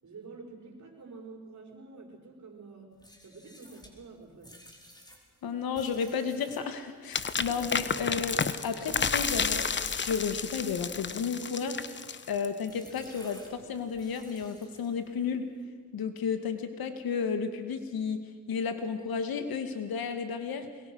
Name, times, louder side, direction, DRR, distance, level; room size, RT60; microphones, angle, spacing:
voice 1, 0.0-2.9 3.2-4.5 7.5-7.7, right 4 dB, 45° right, 1 dB, 5.6 m, -48 dB
sound 1, 2.9-9.4 9.8-10.7 11.1-12.2 12.7-15.1, equal, 10° left, 4.7 m, -54 dB
voice 2, 5.4-11.8 12.3-15.5 15.9-18.2 18.5-20.7, left 6 dB, 65° left, 8 dB, 2.3 m, -32 dB
sound 2, 7.1-12.6, left 5 dB, 30° left, 1.1 m, -31 dB
22.5 x 22.0 x 6.4 m, 1.5 s
supercardioid pair, 75°, 39 cm